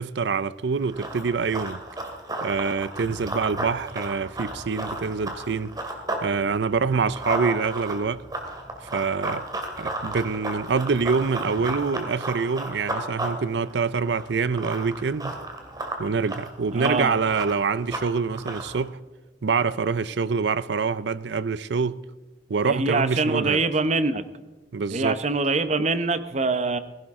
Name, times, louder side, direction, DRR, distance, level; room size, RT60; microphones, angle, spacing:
voice 1, 0.0-1.8 2.4-5.8 6.2-8.2 8.9-9.5 9.8-15.4 16.0-19.0 19.4-22.0 22.5-23.6 24.7-25.2, right 5 dB, 75° right, 0.5 m, -25 dB
Run, 0.8-6.3 6.6-18.8, right 2 dB, 20° right, 2.3 m, -33 dB
voice 2, 16.7-17.2 22.6-24.2 24.9-26.8, right 3 dB, 40° right, 0.8 m, -24 dB
17.0 x 16.0 x 3.7 m
head